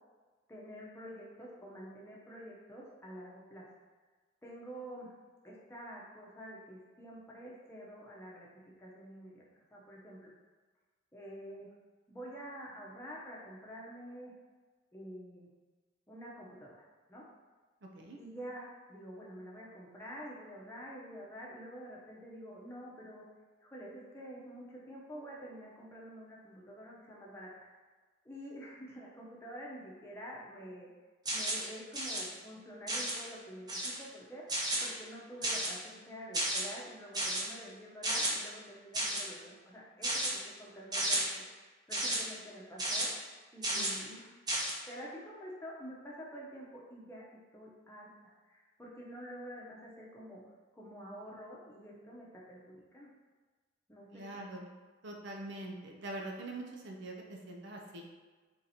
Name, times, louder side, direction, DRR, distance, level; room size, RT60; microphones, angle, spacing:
voice 1, 0.5-3.6 4.4-5.1 5.4-8.5 8.8-9.4 9.7-10.3 11.1-11.7 12.1-14.3 14.9-15.5 16.1-16.8 17.1-17.2 18.2-23.2 23.6-27.7 28.2-30.9 31.3-34.4 34.8-43.1 43.5-44.3 44.9-47.2 47.5-50.4 50.7-53.1 53.9-54.4, equal, 15° left, -5 dB, 0.8 m, -48 dB
sound 1, 31.3-31.7 31.9-32.2 32.9-33.2 33.7-34.0 34.5-34.9 35.4-35.8 36.3-36.6 37.1-37.4 38.0-38.3 38.9-39.2 40.0-40.3 40.9-41.2 41.9-42.2 42.8-43.0 43.6-44.0 44.5-44.7, right 1 dB, 20° right, 0.8 m, -32 dB
voice 2, 43.8-44.2 54.1-54.7 55.0-58.1, right 2 dB, 65° right, 0 dB, 0.6 m, -44 dB
3.7 x 2.9 x 4.1 m, 1.3 s
head